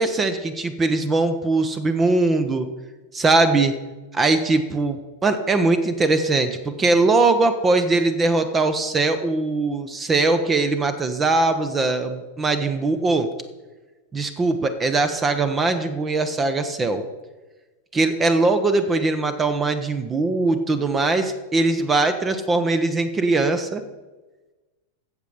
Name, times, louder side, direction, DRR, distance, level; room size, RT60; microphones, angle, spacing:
voice 1, 0.0-2.7 3.1-3.7 4.1-13.3 14.1-17.0 17.9-23.8, right 3 dB, 20° right, 10 dB, 1.0 m, -21 dB
13.5 x 7.8 x 5.0 m, 1.2 s
figure-of-eight pair, 90°, 0 cm